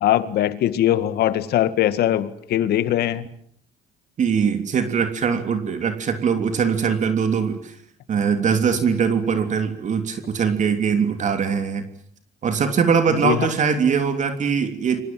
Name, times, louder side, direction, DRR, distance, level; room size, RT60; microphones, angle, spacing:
voice 1, 0.0-3.2 13.1-13.5, left 12 dB, 70° left, 13 dB, 2.0 m, -21 dB
voice 2, 4.2-7.8 8.1-11.8 12.4-15.0, right 6 dB, 45° right, 8 dB, 3.2 m, -21 dB
29.0 x 24.5 x 7.7 m, 0.64 s
cardioid pair, 110°, 17 cm